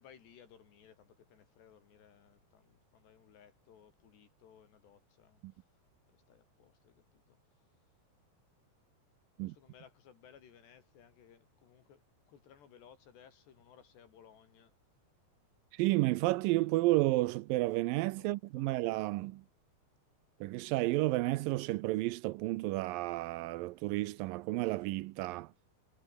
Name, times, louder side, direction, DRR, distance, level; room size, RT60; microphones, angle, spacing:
voice 1, 0.0-5.7 6.0-7.4 9.4-14.7 18.2-18.7, left 8 dB, 85° left, 5.3 m, -60 dB
voice 2, 15.7-19.4 20.4-25.5, right 19 dB, 85° right, 2.0 m, -31 dB
omnidirectional pair, 4.8 m